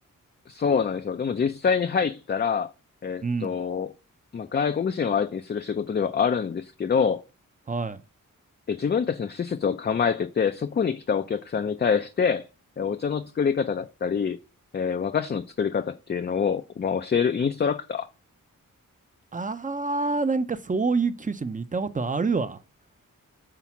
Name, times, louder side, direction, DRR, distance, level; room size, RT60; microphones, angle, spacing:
voice 1, 0.5-2.7 3.0-3.9 4.3-7.2 8.7-12.4 12.8-14.4 14.7-18.1, left 6 dB, 30° left, 0.4 m, -26 dB
voice 2, 3.2-3.5 7.7-8.0 19.3-22.6, right 4 dB, 25° right, 0.6 m, -27 dB
5.8 x 4.1 x 5.9 m
wide cardioid pair, 100°, 33 cm